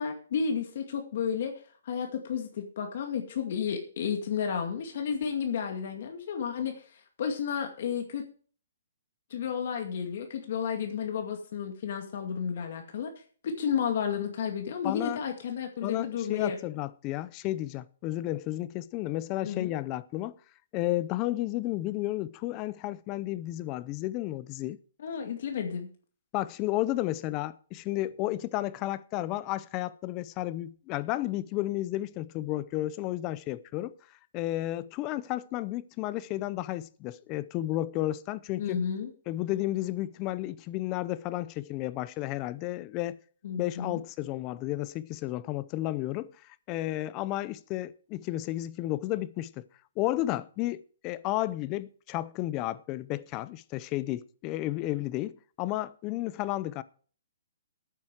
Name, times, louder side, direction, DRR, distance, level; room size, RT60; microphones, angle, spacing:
voice 1, 0.0-1.5 1.8-8.2 9.3-13.1 13.4-16.6 19.4-19.7 25.0-25.9 38.6-39.1 43.4-44.0, left 7 dB, 55° left, 2.2 m, -32 dB
voice 2, 14.8-15.2 15.8-20.3 20.7-24.8 26.3-33.9 34.3-38.8 39.3-43.2 43.6-46.3 46.7-49.6 50.0-56.8, left 16 dB, 25° left, 0.5 m, -32 dB
13.0 x 9.3 x 4.8 m
hypercardioid pair, 165°, 0 cm